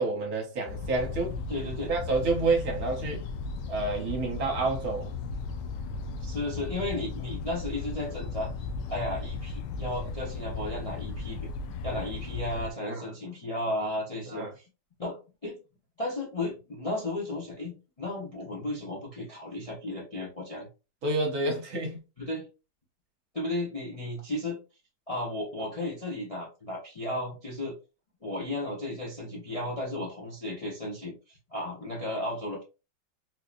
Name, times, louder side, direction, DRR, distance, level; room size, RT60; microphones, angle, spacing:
voice 1, 0.0-1.4 1.9-3.2 3.7-5.2 12.9-13.1 14.3-14.5 21.0-22.0, right 3 dB, 60° right, 1.3 m, -29 dB
sound 1, 0.7-12.7, left 4 dB, 75° left, 1.1 m, -36 dB
voice 2, 1.5-1.9 6.2-8.5 8.9-11.4 11.8-14.5 15.0-15.6 16.0-20.7 22.2-22.4 23.3-24.6 25.1-27.7 28.2-32.6, left 1 dB, 30° left, 0.6 m, -34 dB
4.0 x 2.7 x 2.4 m
omnidirectional pair, 2.0 m